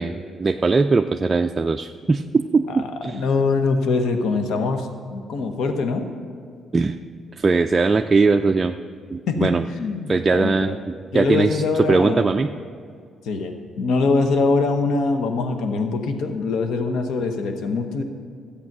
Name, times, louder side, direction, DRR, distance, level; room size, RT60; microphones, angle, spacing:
voice 1, 0.0-3.2 6.7-7.0 7.4-8.7 9.1-9.6 10.1-10.8 11.1-11.6 11.9-12.5, right 4 dB, 30° right, 5 dB, 0.4 m, -20 dB
voice 2, 2.7-6.1 9.3-10.8 11.1-12.3 13.2-18.0, left 4 dB, 80° left, 6 dB, 1.1 m, -23 dB
13.5 x 8.6 x 6.1 m, 2.2 s
cardioid pair, 90°, 0 cm